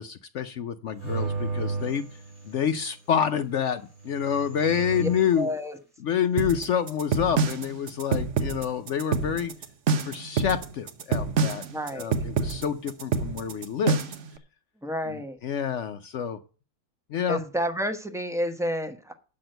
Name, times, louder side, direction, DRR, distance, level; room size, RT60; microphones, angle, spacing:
voice 1, 0.0-2.1 2.4-5.5 6.0-9.5 10.0-11.6 11.9-14.0 15.1-16.4 17.1-17.4, left 8 dB, 65° left, 0.8 m, -28 dB
sound 1, 1.0-2.9 3.9-5.4, right 4 dB, 80° right, 5.9 m, -33 dB
voice 2, 5.4-5.8 11.7-12.1 14.8-15.4 17.3-19.1, equal, ahead, 0.8 m, -30 dB
sound 2, 6.4-14.3, right 5 dB, 55° right, 1.2 m, -26 dB
8.5 x 6.1 x 7.7 m
omnidirectional pair, 1.6 m